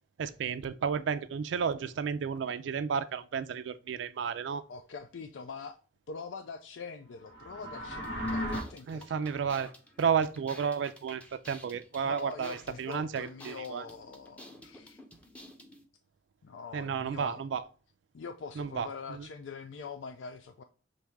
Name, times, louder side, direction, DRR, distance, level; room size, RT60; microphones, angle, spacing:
voice 1, 0.2-4.6 8.9-9.7 10.0-13.8 16.7-17.6 18.6-19.2, right 6 dB, 75° right, 0.3 m, -32 dB
voice 2, 4.7-5.8 6.1-9.4 12.0-15.0 16.4-17.4 18.1-20.6, left 5 dB, 85° left, 0.4 m, -44 dB
sound 1, 7.2-8.6, equal, 70° left, 1.8 m, -35 dB
sound 2, 8.0-15.8, equal, 10° left, 0.6 m, -52 dB
5.9 x 2.6 x 3.4 m
head